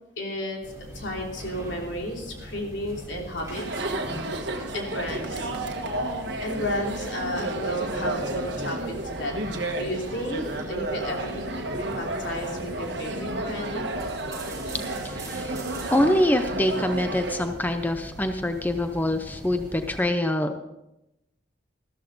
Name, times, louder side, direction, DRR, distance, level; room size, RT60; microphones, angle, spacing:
voice 1, 0.2-0.6 0.9-3.8 4.7-5.5 5.8-5.9 6.4-11.6 11.9-13.8, equal, 75° left, 0 dB, 3.0 m, -33 dB
sound 1, 0.6-20.0, equal, 15° right, 3.2 m, -42 dB
Chatter, 3.4-17.5, right 2 dB, 65° right, 1.5 m, -32 dB
voice 2, 15.0-15.6 15.9-20.6, left 1 dB, 10° left, 7 dB, 0.5 m, -25 dB
13.5 x 13.5 x 4.0 m, 0.92 s
head